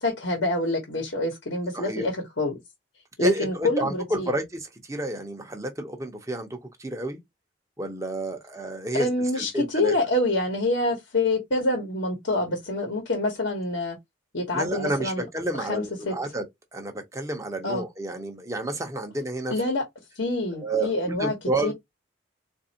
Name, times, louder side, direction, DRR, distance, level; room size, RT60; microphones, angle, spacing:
voice 1, 0.0-2.5 3.2-4.3 8.9-14.0 14.3-15.2 15.6-16.1 17.6-17.8 19.5-19.8 20.2-21.3 21.6-21.7, left 2 dB, 65° left, 1.2 m, -26 dB
voice 2, 1.7-2.0 3.2-7.2 7.8-9.9 14.5-16.4 16.7-19.5 20.6-21.7, right 2 dB, 15° right, 0.8 m, -30 dB
4.0 x 2.6 x 2.8 m
head